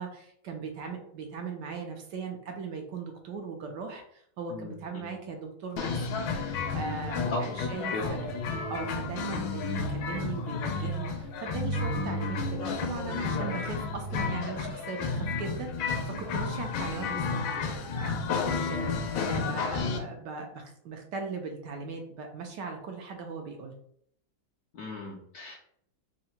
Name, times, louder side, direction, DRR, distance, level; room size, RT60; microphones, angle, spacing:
voice 1, 0.0-6.1 6.5-8.3 8.7-23.7, right 4 dB, 70° right, 3 dB, 1.1 m, -39 dB
voice 2, 4.5-5.1 7.3-8.0 9.3-9.6 24.7-25.6, left 2 dB, 65° left, -3 dB, 1.0 m, -37 dB
sound 1, 5.8-20.0, left 4 dB, 80° left, 1.4 m, -31 dB
3.7 x 2.1 x 4.2 m, 0.66 s
omnidirectional pair, 2.2 m